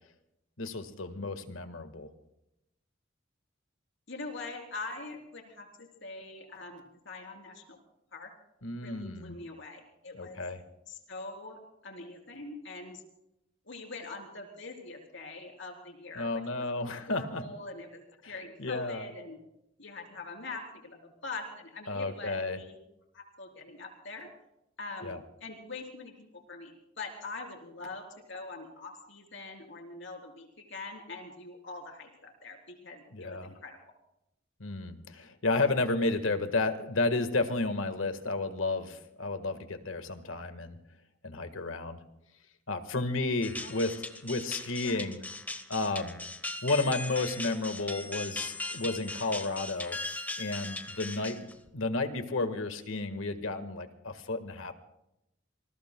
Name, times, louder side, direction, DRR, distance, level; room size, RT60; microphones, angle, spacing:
voice 1, 0.6-2.1 8.6-9.4 10.1-10.6 16.1-17.4 18.2-18.3 18.6-19.0 21.9-22.6 25.0-25.2 33.1-33.5 34.6-40.8 41.2-42.0 42.7-43.9 44.2-45.2 45.7-46.2 46.6-50.0 50.4-51.4 51.7-54.7, left 2 dB, 85° left, 9 dB, 1.6 m, -32 dB
voice 2, 4.1-7.8 8.1-8.3 8.8-10.4 10.9-13.0 13.7-16.7 17.1-19.4 19.8-22.8 23.1-24.3 24.8-33.8 43.6-44.2 44.8-45.3, left 3 dB, 65° left, 3 dB, 3.6 m, -43 dB
sound 1, 43.4-51.7, left 2 dB, 10° left, 1.0 m, -39 dB
27.5 x 20.5 x 2.2 m, 0.84 s
head